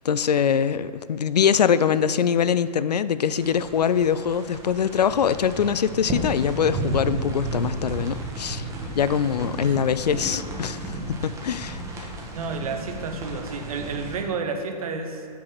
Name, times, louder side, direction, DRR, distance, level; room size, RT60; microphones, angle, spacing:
voice 1, 0.0-8.6 8.9-12.1, left 7 dB, 75° left, 15 dB, 0.4 m, -23 dB
sound 1, 3.4-14.2, right 2 dB, 15° right, 1.6 m, -33 dB
voice 2, 12.3-15.3, right 4 dB, 60° right, 5 dB, 1.2 m, -31 dB
9.3 x 5.2 x 6.2 m, 2.2 s
figure-of-eight pair, 110°, 21 cm